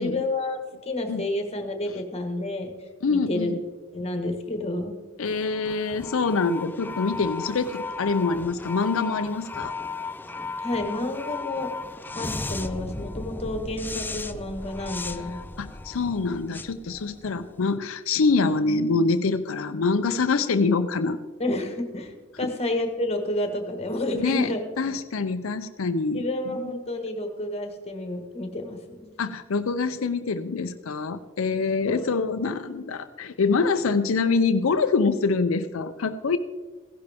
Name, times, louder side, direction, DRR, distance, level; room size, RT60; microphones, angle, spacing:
voice 1, 0.0-2.7 3.1-3.5 3.9-4.9 10.6-11.7 12.1-15.4 21.4-24.6 26.1-29.1 31.8-32.0, left 1 dB, 30° left, 5 dB, 1.5 m, -30 dB
voice 2, 3.0-3.6 5.2-9.7 15.6-21.2 24.1-26.2 26.6-26.7 29.2-36.4, left 4 dB, 70° left, 8 dB, 0.5 m, -25 dB
sound 1, 5.2-17.6, left 3 dB, 10° left, 0.4 m, -36 dB
15.5 x 11.5 x 3.5 m, 1.3 s
head